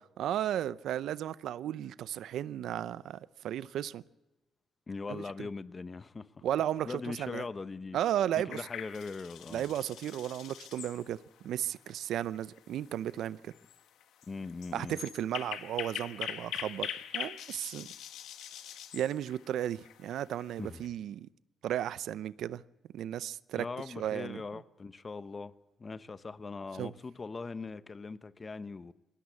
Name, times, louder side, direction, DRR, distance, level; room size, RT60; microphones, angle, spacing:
voice 1, 0.2-4.0 5.1-5.5 6.4-7.4 7.9-8.6 9.5-11.2 11.4-13.5 14.7-16.9 17.1-17.9 18.9-21.3 21.6-22.6 22.9-23.7 24.0-24.4 26.8-26.9, right 11 dB, 75° right, 0.6 m, -34 dB
voice 2, 4.9-6.4 6.8-8.0 8.4-9.7 14.3-15.0 20.6-20.8 23.5-25.5 25.8-28.9, left 4 dB, 30° left, 1.0 m, -40 dB
sound 1, 8.5-20.9, left 10 dB, 85° left, 1.5 m, -44 dB
19.5 x 17.0 x 8.4 m
cardioid pair, 90°, 0 cm